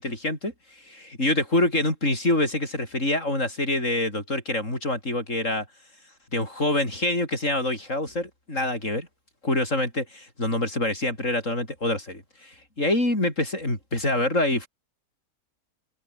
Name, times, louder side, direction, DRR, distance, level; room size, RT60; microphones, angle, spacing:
voice 1, 0.0-5.7 6.3-9.1 9.4-14.7, left 1 dB, 55° left, 8.1 m, -26 dB
omnidirectional pair, 1.5 m